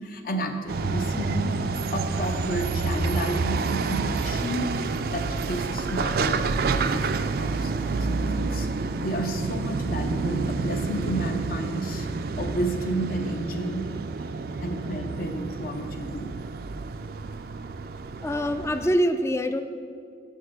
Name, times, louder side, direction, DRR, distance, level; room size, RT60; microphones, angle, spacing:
voice 1, 0.0-8.7 9.0-12.1 12.4-13.9 14.6-16.4, right 1 dB, 50° left, 6 dB, 0.7 m, -32 dB
sound 1, 0.7-18.9, right 4 dB, 55° right, 0.4 m, -29 dB
voice 2, 18.2-19.6, equal, 15° left, 10 dB, 0.3 m, -24 dB
7.5 x 6.5 x 6.4 m, 2.3 s
head